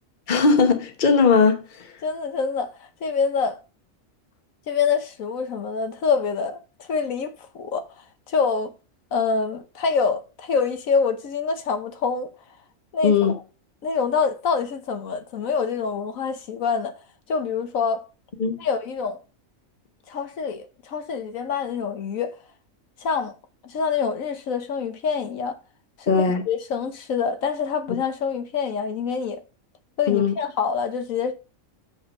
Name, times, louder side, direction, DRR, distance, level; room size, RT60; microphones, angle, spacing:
voice 1, 0.3-1.6 13.0-13.3 18.4-18.6 26.1-26.4 30.1-30.3, left 5 dB, 40° left, 1.1 m, -18 dB
voice 2, 2.0-3.6 4.7-7.9 8.3-8.7 9.1-12.3 12.9-13.4 13.8-16.9 17.3-18.0 18.6-19.2 20.1-22.4 23.0-23.4 23.6-25.6 26.0-26.1 26.5-29.4 30.0-31.3, left 5 dB, 75° left, 1.3 m, -26 dB
7.0 x 5.3 x 5.3 m
omnidirectional pair, 1.4 m